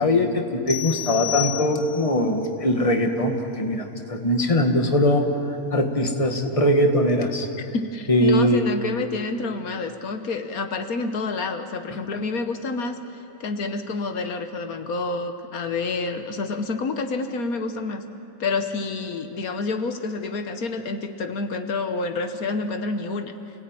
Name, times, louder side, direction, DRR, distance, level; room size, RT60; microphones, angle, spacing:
voice 1, 0.0-5.3 5.7-7.5 8.1-8.7, left 1 dB, 25° left, 4 dB, 1.8 m, -21 dB
sound 1, 0.7-2.2, left 14 dB, 50° left, 2.3 m, -30 dB
voice 2, 7.7-13.0 13.4-18.0 18.4-23.3, left 3 dB, 80° left, 7 dB, 1.6 m, -28 dB
29.0 x 18.0 x 9.0 m, 2.8 s
omnidirectional pair, 1.5 m